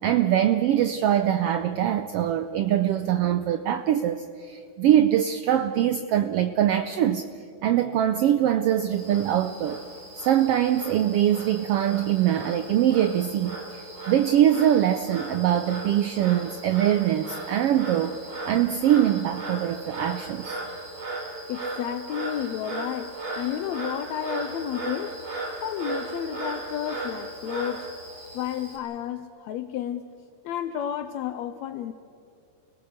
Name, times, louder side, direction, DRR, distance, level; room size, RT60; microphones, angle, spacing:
voice 1, 0.0-7.3 7.6-9.8 10.2-18.2 18.5-20.6, right 11 dB, 85° right, 10 dB, 1.3 m, -23 dB
Frog, 8.9-28.8, right 2 dB, 40° right, 4.0 m, -37 dB
voice 2, 21.5-28.0 28.3-30.1 30.4-31.9, left 10 dB, 75° left, 10 dB, 1.8 m, -32 dB
29.5 x 18.0 x 6.6 m, 2.6 s
omnidirectional pair, 3.4 m